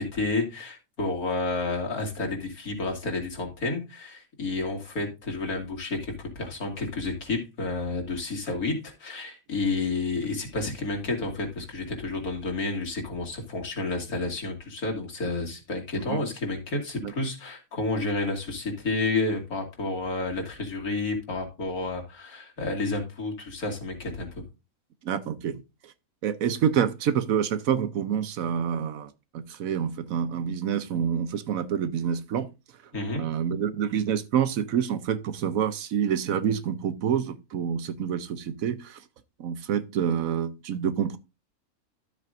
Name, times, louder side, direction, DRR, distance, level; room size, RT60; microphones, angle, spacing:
voice 1, 0.0-24.4 32.9-33.2, left 3 dB, 80° left, 2.8 m, -30 dB
voice 2, 25.0-25.6 26.2-32.5 33.2-39.0 39.4-41.2, right 8 dB, 70° right, 1.1 m, -27 dB
12.5 x 7.9 x 2.6 m
omnidirectional pair, 1.6 m